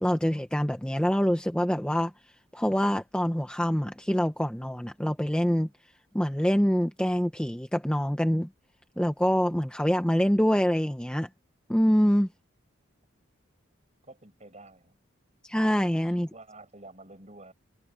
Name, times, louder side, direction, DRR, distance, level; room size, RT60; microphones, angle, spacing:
voice 1, 0.0-2.1 2.5-5.7 6.1-8.5 9.0-11.3 11.7-12.3 15.4-16.3, equal, 5° left, 0.8 m, -25 dB
voice 2, 14.0-14.9 16.3-17.5, right 2 dB, 35° right, 5.4 m, -49 dB
head